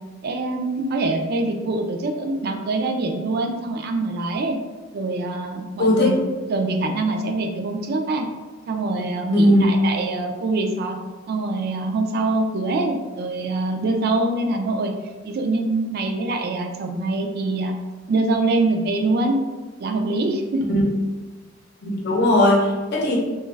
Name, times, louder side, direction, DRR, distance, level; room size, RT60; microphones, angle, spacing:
voice 1, 0.2-4.6 4.9-6.2 6.5-8.3 8.7-11.0 11.3-14.9 15.2-17.8 18.1-19.4 19.8-20.6, right 2 dB, 50° right, 4 dB, 0.4 m, -24 dB
voice 2, 5.8-6.2 9.3-9.6 20.7-20.8 21.8-23.2, left 1 dB, 55° left, -2 dB, 0.7 m, -18 dB
3.0 x 2.3 x 3.2 m, 1.3 s
head